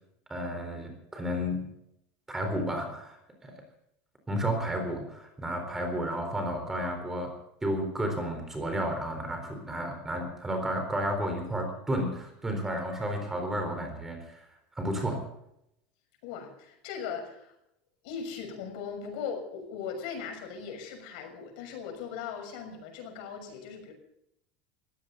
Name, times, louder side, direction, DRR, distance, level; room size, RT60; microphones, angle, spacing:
voice 1, 0.3-1.7 2.3-3.2 3.4-3.5 4.3-7.3 7.6-14.4 14.8-15.2, equal, 10° right, 4 dB, 4.0 m, -32 dB
voice 2, 16.2-17.5 18.0-23.9, left 6 dB, 60° left, 5 dB, 6.3 m, -39 dB
20.0 x 16.0 x 4.0 m, 0.78 s
cardioid pair, 180°, 4 cm